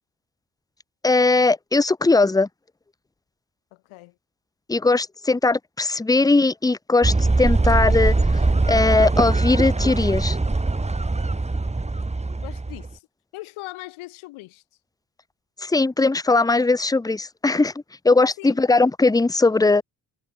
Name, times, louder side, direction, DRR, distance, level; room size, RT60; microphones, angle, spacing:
voice 1, 1.0-2.5 4.7-8.2 8.7-10.4 15.6-17.7 18.0-19.8, left 3 dB, 5° left, 0.8 m, -19 dB
voice 2, 3.7-4.1 12.4-13.0 13.3-14.6 18.4-18.6, left 20 dB, 75° left, 6.2 m, -39 dB
sound 1, 7.0-12.9, right 3 dB, 15° right, 1.7 m, -21 dB
hypercardioid pair, 50°, 49 cm